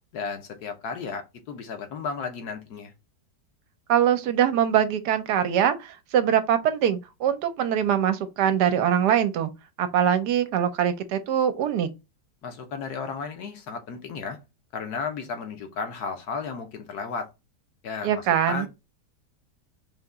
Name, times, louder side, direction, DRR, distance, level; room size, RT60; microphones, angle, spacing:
voice 1, 0.1-2.9 12.4-14.4 14.7-17.3 17.8-18.7, left 5 dB, 70° left, 1.4 m, -34 dB
voice 2, 3.9-9.5 9.8-11.9 18.0-18.7, right 9 dB, 75° right, 1.2 m, -23 dB
4.1 x 2.9 x 3.4 m
omnidirectional pair, 1.9 m